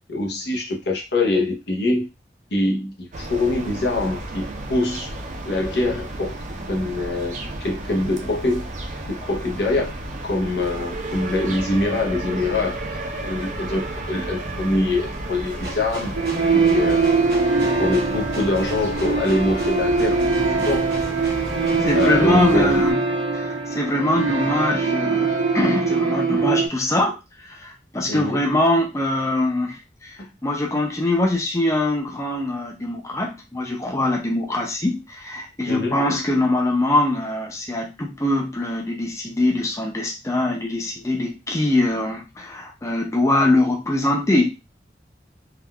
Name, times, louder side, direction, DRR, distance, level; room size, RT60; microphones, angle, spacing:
voice 1, 0.1-2.1 2.5-5.1 5.4-6.4 6.7-7.3 7.6-8.7 9.0-9.9 10.2-16.1 16.4-17.0 17.6-20.2 20.6-20.9 21.9-22.8 28.1-28.4 35.7-36.0, left 2 dB, 75° left, 1 dB, 0.7 m, -24 dB
sound 1, 3.1-22.9, right 2 dB, 40° right, 0.4 m, -33 dB
sound 2, 15.5-22.1, equal, 60° right, 0.8 m, -39 dB
sound 3, 16.1-26.7, right 4 dB, 85° right, 1.0 m, -22 dB
voice 2, 21.8-23.0 23.3-44.5, left 2 dB, 15° left, -1 dB, 0.4 m, -23 dB
3.5 x 2.3 x 2.2 m, 0.26 s
head